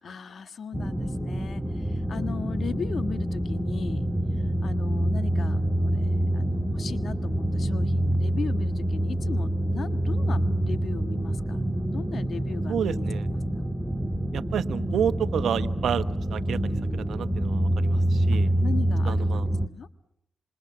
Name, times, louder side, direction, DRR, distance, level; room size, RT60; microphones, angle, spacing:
voice 1, 0.0-4.1 4.4-11.6 11.9-13.6 18.6-19.4 19.7-19.9, left 6 dB, 65° left, 11 dB, 1.6 m, -38 dB
sound 1, 0.7-19.7, right 1 dB, 5° right, 1.5 m, -26 dB
voice 2, 12.7-13.3 14.3-16.0 16.3-18.5 19.1-19.5, right 8 dB, 90° right, 13 dB, 1.0 m, -30 dB
27.0 x 27.0 x 7.2 m, 0.78 s
cardioid pair, 65°, 0 cm